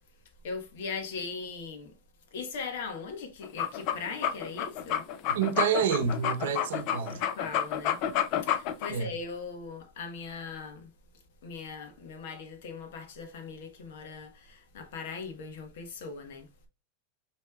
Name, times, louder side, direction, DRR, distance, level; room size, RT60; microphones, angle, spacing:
voice 1, 0.4-1.9 2.3-5.1 7.1-8.0 8.4-10.9 11.4-16.5, left 4 dB, 70° left, 1.3 m, -39 dB
sound 1, 3.4-8.9, left 10 dB, 40° left, 0.4 m, -29 dB
voice 2, 5.3-7.2 8.9-9.1, right 7 dB, 85° right, 0.8 m, -28 dB
6.1 x 3.2 x 2.3 m
supercardioid pair, 165°, 0 cm